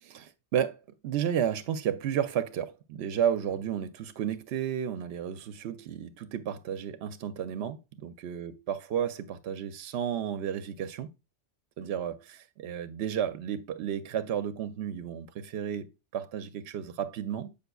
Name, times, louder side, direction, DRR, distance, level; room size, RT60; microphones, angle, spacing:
voice 1, 0.0-11.1 11.8-17.5, right 9 dB, 70° right, 0.8 m, -32 dB
7.9 x 5.3 x 2.2 m
omnidirectional pair, 1.2 m